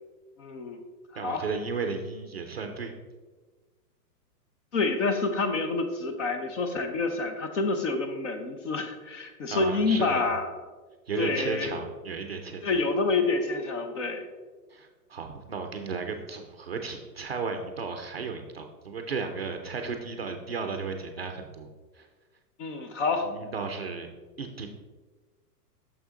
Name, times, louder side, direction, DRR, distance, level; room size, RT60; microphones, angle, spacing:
voice 1, 0.4-0.8 1.2-1.4 4.7-10.5 11.2-11.8 12.6-14.2 22.6-23.3, left 3 dB, 50° left, 6 dB, 0.9 m, -28 dB
voice 2, 1.1-2.9 9.5-10.3 11.1-12.6 14.7-21.7 22.0-22.1 23.2-24.1 24.4-24.7, right 4 dB, 40° right, 5 dB, 0.4 m, -34 dB
6.4 x 6.1 x 3.7 m, 1.3 s
hypercardioid pair, 175°, 48 cm